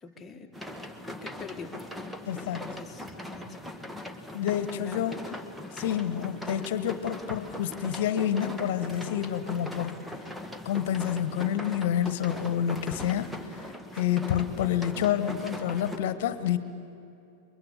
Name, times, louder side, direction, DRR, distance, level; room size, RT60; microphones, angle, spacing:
voice 1, 0.0-0.5 1.0-1.8 2.5-3.5 4.7-5.2, left 4 dB, 15° left, 3 dB, 2.1 m, -44 dB
sound 1, 0.5-16.0, left 1 dB, 5° right, 1.7 m, -40 dB
voice 2, 2.3-2.8 4.3-5.3 5.7-9.9 10.6-16.6, left 10 dB, 50° left, 13 dB, 1.5 m, -28 dB
29.0 x 23.0 x 7.2 m, 2.8 s
figure-of-eight pair, 90°, 0 cm